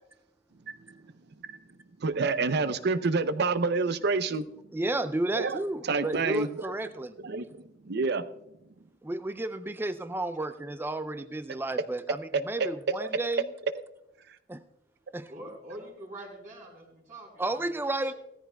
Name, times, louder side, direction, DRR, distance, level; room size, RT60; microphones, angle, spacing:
voice 1, 2.0-4.5 5.4-5.6 5.9-6.5 7.2-8.2 12.6-12.7 13.0-13.1, right 4 dB, 60° right, 12 dB, 0.6 m, -27 dB
voice 2, 4.7-7.1 9.0-13.5 14.5-14.6 15.1-15.3 17.4-18.1, right 2 dB, 10° right, 11 dB, 0.4 m, -32 dB
voice 3, 15.3-17.7 18.0-18.2, right 1 dB, 45° right, -3 dB, 4.1 m, -45 dB
16.5 x 14.0 x 2.3 m, 0.85 s
head